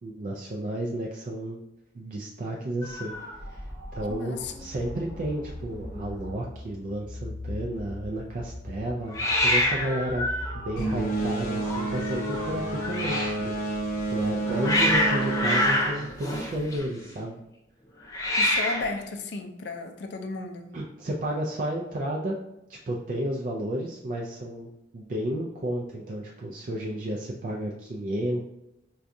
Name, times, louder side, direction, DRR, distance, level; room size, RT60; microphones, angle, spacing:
voice 1, 0.0-1.6 1.9-3.1 3.5-3.6 3.9-10.3 10.5-13.6 14.1-17.4 20.7-22.4 22.7-28.5, right 1 dB, 45° right, -1 dB, 0.3 m, -32 dB
Hiss, 2.8-4.2 4.4-4.9 5.1-5.2 5.4-6.1 9.1-13.4 14.2-17.1 18.0-19.0, left 1 dB, 20° left, 0.5 m, -28 dB
voice 2, 4.1-4.7 18.4-20.7, left 3 dB, 65° left, 6 dB, 0.4 m, -34 dB
sound 1, 4.2-11.0, left 1 dB, 10° right, 0.8 m, -40 dB
sound 2, 10.8-16.8, right 2 dB, 50° left, 0.8 m, -30 dB
4.6 x 2.3 x 2.6 m, 0.88 s
head